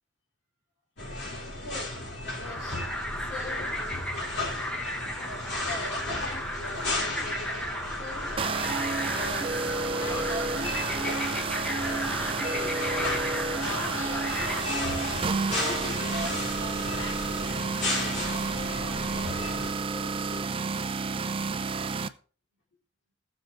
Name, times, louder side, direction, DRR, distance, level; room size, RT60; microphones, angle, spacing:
sound 1, 1.0-19.7, left 2 dB, 60° left, 4.0 m, -35 dB
voice 1, 1.6-2.8 3.1-4.3 5.4-8.4 9.0-9.6 10.0-13.2 13.5-14.5 14.9-15.0 15.6-17.6 17.9-21.0, left 2 dB, 85° left, 3.6 m, -42 dB
sound 2, 2.4-14.6, equal, 5° left, 1.1 m, -34 dB
sound 3, 8.4-22.1, right 4 dB, 30° right, 0.4 m, -31 dB
17.5 x 6.3 x 3.4 m
head